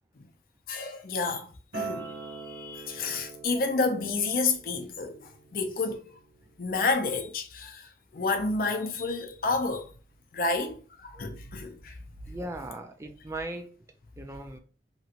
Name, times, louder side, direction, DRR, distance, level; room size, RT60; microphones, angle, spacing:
voice 1, 0.7-1.5 1.7-5.2 5.5-6.0 6.6-9.9 10.3-12.0, left 3 dB, 50° left, 0.5 m, -30 dB
Acoustic guitar, 1.7-6.9, right 4 dB, 60° right, 0.9 m, -43 dB
voice 2, 12.3-13.7 14.2-14.6, right 2 dB, 15° right, 0.3 m, -38 dB
3.0 x 2.5 x 2.8 m
head